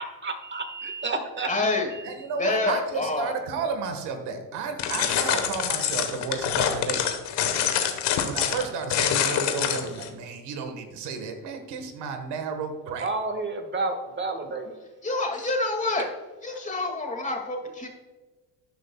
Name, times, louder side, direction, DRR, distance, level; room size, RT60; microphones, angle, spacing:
voice 1, 0.0-1.5 1.9-2.1 2.5-2.6 13.0-14.8 16.0-16.1, right 3 dB, 25° right, 7 dB, 1.6 m, -31 dB
voice 2, 1.5-1.9 2.4-3.3 15.0-16.1 16.4-17.9, left 2 dB, 20° left, 2 dB, 2.2 m, -27 dB
voice 3, 2.0-7.2 8.2-13.1, right 5 dB, 75° right, 6 dB, 1.6 m, -32 dB
sound 1, 4.8-10.1, left 9 dB, 80° left, 1.3 m, -26 dB
12.5 x 9.2 x 2.3 m, 1.3 s
cardioid pair, 95°, 41 cm